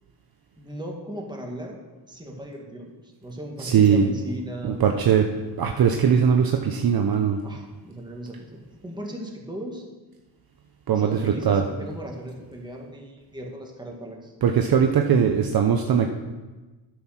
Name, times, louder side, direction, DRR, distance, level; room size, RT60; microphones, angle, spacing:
voice 1, 0.6-1.8 2.1-4.8 7.4-9.8 10.9-14.3, equal, 10° right, 0 dB, 2.0 m, -37 dB
voice 2, 3.6-4.1 4.6-5.3 5.6-7.4 10.9-11.6 14.4-16.1, right 7 dB, 50° right, 4 dB, 0.8 m, -20 dB
9.4 x 6.5 x 5.9 m, 1.2 s
cardioid pair, 80°, 47 cm